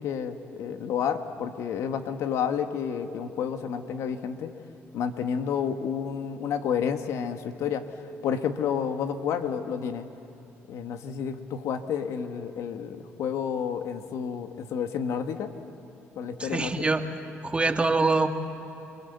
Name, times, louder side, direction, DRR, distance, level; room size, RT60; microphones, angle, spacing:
voice 1, 0.0-4.5 4.9-7.8 8.2-10.1 10.7-15.5 16.1-16.9, left 7 dB, 75° left, 8 dB, 1.6 m, -30 dB
voice 2, 16.4-17.0 17.4-18.3, right 3 dB, 20° right, 5 dB, 2.0 m, -24 dB
29.0 x 22.0 x 8.2 m, 3.0 s
cardioid pair, 80°, 5 cm